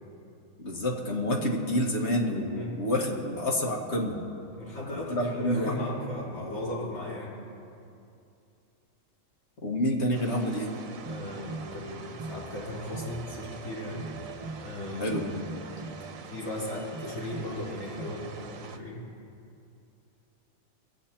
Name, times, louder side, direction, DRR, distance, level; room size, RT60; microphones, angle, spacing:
voice 1, 0.6-4.2 4.9-5.7 9.6-10.7 15.0-15.8, left 1 dB, 55° left, -1 dB, 1.8 m, -28 dB
voice 2, 4.6-7.3 11.0-14.1 14.6-15.2 16.3-19.0, left 1 dB, 85° left, -7 dB, 4.2 m, -36 dB
sound 1, 10.1-18.8, right 6 dB, 80° right, 1.2 m, -45 dB
sound 2, 11.0-18.4, right 3 dB, 30° right, 1.0 m, -43 dB
22.0 x 8.3 x 4.4 m, 2.6 s
omnidirectional pair, 1.4 m